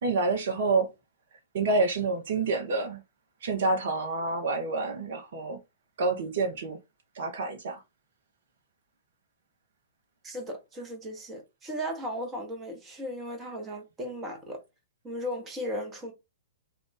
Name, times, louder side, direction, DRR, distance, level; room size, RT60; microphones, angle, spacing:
voice 1, 0.0-0.9 1.5-3.0 3.4-5.6 6.0-6.8 7.1-7.8, right 3 dB, 55° right, 0.7 m, -28 dB
voice 2, 10.2-14.6 15.0-16.1, equal, 20° right, 1.0 m, -36 dB
2.4 x 2.4 x 3.8 m
figure-of-eight pair, 110°, 0 cm